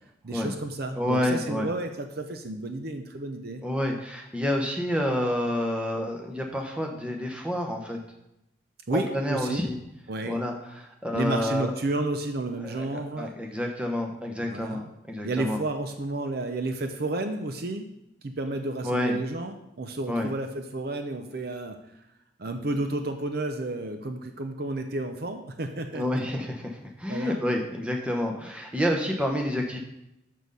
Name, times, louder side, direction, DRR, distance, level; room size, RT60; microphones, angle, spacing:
voice 1, 0.2-3.6 8.9-9.7 10.1-10.4 11.1-13.3 14.5-14.8 15.2-17.9 18.2-21.8 22.4-26.1 27.1-27.4, right 2 dB, 50° right, 6 dB, 0.6 m, -31 dB
voice 2, 0.9-1.7 3.6-8.0 8.9-9.8 10.3-11.7 12.6-12.9 13.2-15.6 18.8-19.2 20.1-20.3 25.9-29.8, left 1 dB, 5° right, 2 dB, 1.0 m, -29 dB
6.4 x 6.2 x 5.4 m, 0.86 s
head